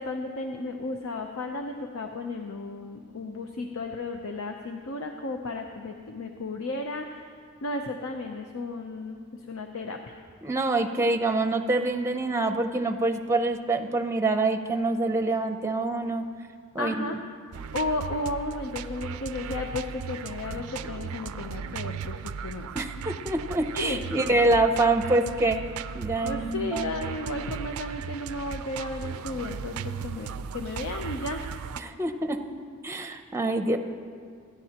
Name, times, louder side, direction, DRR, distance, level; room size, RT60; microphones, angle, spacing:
voice 1, 0.0-7.3 7.6-10.2 16.8-17.2 17.7-22.7 23.8-24.4 26.2-31.4, left 2 dB, 85° left, 3 dB, 0.7 m, -34 dB
voice 2, 10.4-16.2 16.7-17.2 22.7-25.7 25.9-27.0 31.8-32.4 32.8-33.8, right 2 dB, 15° right, 7 dB, 0.6 m, -26 dB
sound 1, 17.5-31.8, right 6 dB, 85° right, 0.4 m, -37 dB
27.5 x 10.5 x 2.9 m, 2.2 s
head